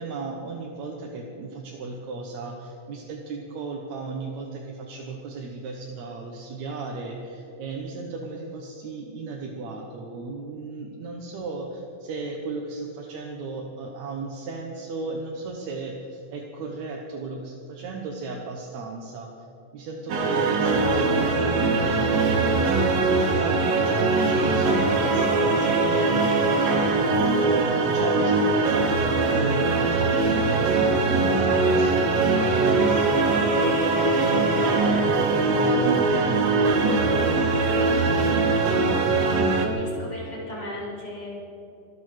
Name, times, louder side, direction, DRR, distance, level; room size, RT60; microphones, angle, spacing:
voice 1, 0.0-19.3 19.7-22.7 23.1-27.0 27.5-37.6, right 3 dB, 60° right, 0 dB, 2.4 m, -35 dB
sound 1, 20.1-39.7, right 3 dB, 85° right, 3.4 m, -21 dB
voice 2, 39.7-41.3, left 1 dB, 10° left, -6 dB, 4.9 m, -36 dB
24.5 x 8.9 x 6.5 m, 2.7 s
omnidirectional pair, 3.9 m